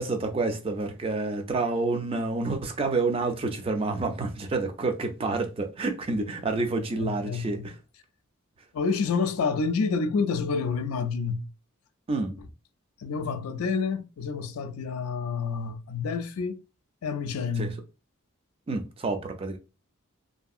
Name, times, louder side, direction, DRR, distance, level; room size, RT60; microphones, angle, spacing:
voice 1, 0.0-7.8 12.1-12.4 17.6-17.7 18.7-19.6, right 3 dB, 25° right, 0.4 m, -28 dB
voice 2, 7.0-7.7 8.7-11.5 13.0-16.6 17.0-17.8, left 5 dB, 85° left, 0.4 m, -28 dB
2.6 x 2.6 x 2.3 m
head